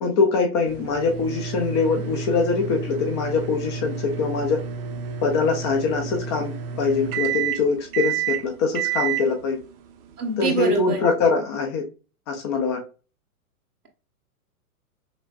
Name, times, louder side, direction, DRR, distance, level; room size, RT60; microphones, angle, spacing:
voice 1, 0.0-4.6 5.2-9.6 10.4-11.9 12.3-12.8, left 4 dB, 20° left, 0.4 m, -23 dB
sound 1, 0.7-11.0, right 7 dB, 40° right, 0.7 m, -30 dB
voice 2, 10.2-11.0, right 3 dB, 85° right, 1.5 m, -25 dB
5.9 x 2.1 x 2.5 m
hypercardioid pair, 120°, 44 cm